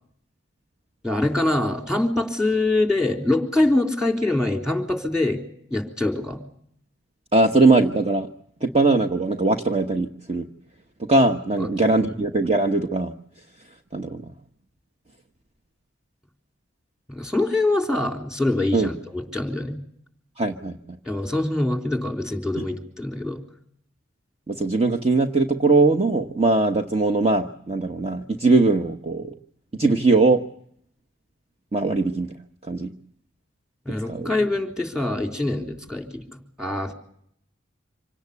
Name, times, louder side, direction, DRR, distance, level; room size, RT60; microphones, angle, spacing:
voice 1, 1.0-5.4 5.7-6.4 11.6-11.7 12.0-12.1 17.1-19.8 21.0-23.4 33.9-36.9, left 2 dB, 5° right, 4 dB, 3.6 m, -24 dB
voice 2, 7.3-8.3 8.6-10.5 11.0-13.1 13.9-14.2 18.7-18.9 20.4-20.8 22.6-22.7 24.5-29.3 29.8-30.4 31.7-32.3 32.7-32.9 34.1-34.3, right 3 dB, 35° right, 5 dB, 1.1 m, -20 dB
26.5 x 17.5 x 8.3 m, 0.67 s
head